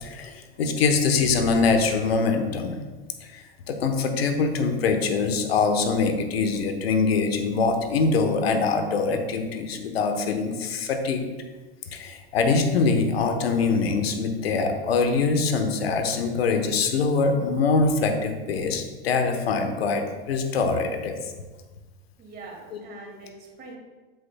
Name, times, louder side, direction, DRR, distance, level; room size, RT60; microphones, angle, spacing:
voice 1, 0.0-2.8 3.2-11.3 11.9-21.2, left 4 dB, 90° left, 5 dB, 1.1 m, -23 dB
voice 2, 22.2-23.8, right 3 dB, 35° right, 0 dB, 2.2 m, -43 dB
8.0 x 7.7 x 2.3 m, 1.3 s
hypercardioid pair, 115°, 30 cm